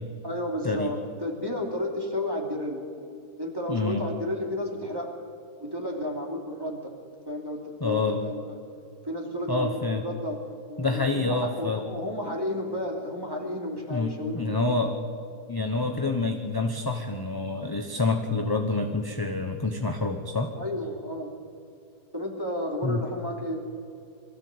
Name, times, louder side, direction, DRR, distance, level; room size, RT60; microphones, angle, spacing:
voice 1, 0.2-2.9 3.4-5.1 5.6-6.9 7.3-8.5 9.0-10.4 10.7-14.8 20.6-21.3 22.1-23.7, left 1 dB, 15° right, 0 dB, 2.8 m, -32 dB
voice 2, 3.7-4.0 7.8-8.2 9.5-10.0 10.8-11.8 13.9-14.9 15.5-20.5 22.8-23.0, left 3 dB, 15° left, 4 dB, 0.9 m, -27 dB
22.5 x 14.5 x 8.0 m, 2.4 s
omnidirectional pair, 1.8 m